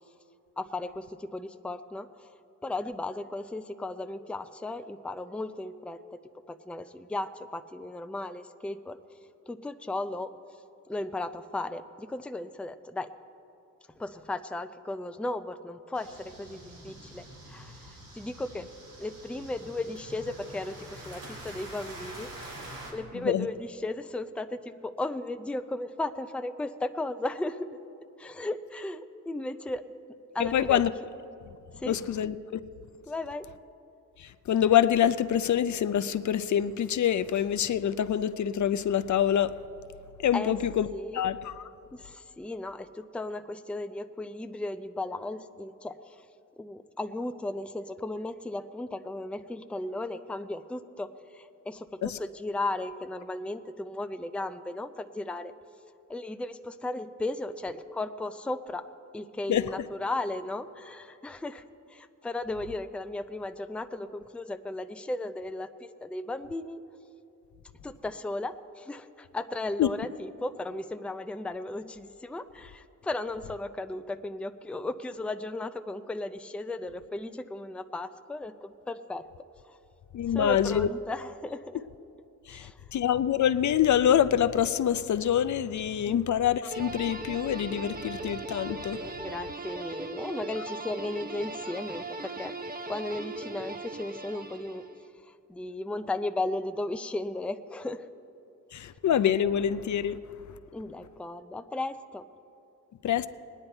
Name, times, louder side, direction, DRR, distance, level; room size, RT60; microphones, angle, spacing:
voice 1, 0.6-2.4 2.6-6.2 6.5-9.0 9.5-10.3 10.9-13.1 14.0-18.7 19.0-27.7 28.2-29.8 30.3-30.8 31.8-32.0 33.1-33.5 40.3-40.5 40.9-41.2 41.9-46.3 46.6-55.5 56.1-58.9 59.1-66.8 67.8-79.2 79.6-79.8 80.3-81.8 82.5-82.9 86.1-86.2 89.0-92.6 92.9-94.8 95.2-98.1 100.7-102.3, left 2 dB, 5° left, 0.4 m, -35 dB
sound 1, 15.9-22.9, right 1 dB, 80° right, 2.8 m, -46 dB
voice 2, 23.1-23.5 30.4-30.9 31.9-32.6 34.2-39.6 40.2-40.9 41.1-41.6 52.0-52.2 59.5-59.6 69.8-69.9 80.1-80.9 82.5-89.0 98.7-100.2 103.0-103.3, left 10 dB, 60° left, 0.5 m, -26 dB
sound 2, 86.7-95.0, right 2 dB, 25° right, 0.8 m, -39 dB
19.5 x 9.9 x 4.4 m
cardioid pair, 80°, 33 cm